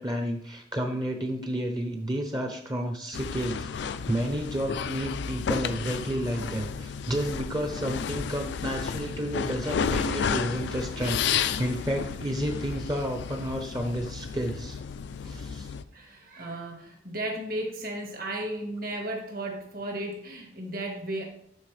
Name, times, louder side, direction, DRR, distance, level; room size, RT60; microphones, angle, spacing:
voice 1, 0.0-14.8 15.2-15.7, equal, 20° right, 4 dB, 0.7 m, -31 dB
sound 1, 3.1-15.8, left 6 dB, 65° left, 0.3 m, -32 dB
voice 2, 15.9-21.2, right 1 dB, 50° right, 2 dB, 1.4 m, -34 dB
11.5 x 4.2 x 3.2 m, 0.67 s
head